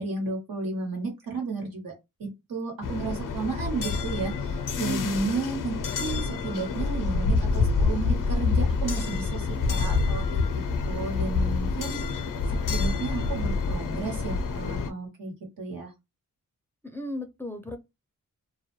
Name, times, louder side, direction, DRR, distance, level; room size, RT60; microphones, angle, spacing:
voice 1, 0.0-1.9 2.2-12.2 12.5-15.9, right 3 dB, 90° right, 1.2 m, -33 dB
sound 1, 2.8-14.9, left 4 dB, 70° left, 0.5 m, -27 dB
voice 2, 4.8-5.1 16.8-17.8, left 2 dB, 5° left, 0.4 m, -34 dB
2.2 x 2.1 x 3.0 m
wide cardioid pair, 80°, 33 cm